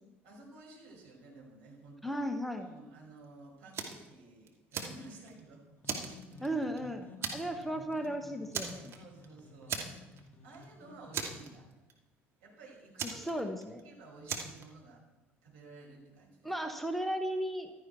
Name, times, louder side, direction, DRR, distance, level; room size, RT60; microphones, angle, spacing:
voice 1, 0.2-2.2 2.5-5.6 6.3-6.5 7.4-7.5 8.9-11.7 12.4-13.5 13.8-15.0 15.4-16.5, right 3 dB, 60° right, -2 dB, 5.7 m, -54 dB
voice 2, 2.0-2.7 6.4-7.1 7.3-8.9 13.1-13.8 16.4-17.7, right 1 dB, ahead, 6 dB, 1.3 m, -35 dB
Fire, 3.7-4.1 4.5-5.4 5.8-6.8 7.2-7.6 7.9-8.1 8.5-9.3 9.7-10.3 10.5-10.6 11.1-11.9 13.0-13.8 14.3-14.6, right 6 dB, 40° right, 2.5 m, -38 dB
sound 1, 5.7-11.4, left 3 dB, 30° left, 2.8 m, -54 dB
15.5 x 13.0 x 4.7 m, 1.1 s
figure-of-eight pair, 60°, 6 cm